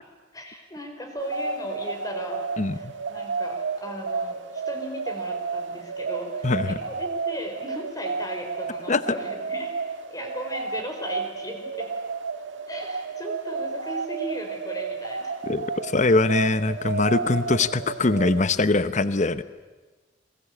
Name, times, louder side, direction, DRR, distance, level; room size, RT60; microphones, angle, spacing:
voice 1, 0.3-2.5 2.7-9.7 10.1-11.9 12.7-15.3 17.2-17.3, equal, 20° left, 4 dB, 4.7 m, -37 dB
sound 1, 1.2-18.5, right 4 dB, 80° right, 1.5 m, -32 dB
voice 2, 2.6-2.9 6.4-6.8 8.9-9.0 15.4-19.4, left 3 dB, 40° left, 13 dB, 0.9 m, -22 dB
29.5 x 21.0 x 8.6 m, 1.3 s
head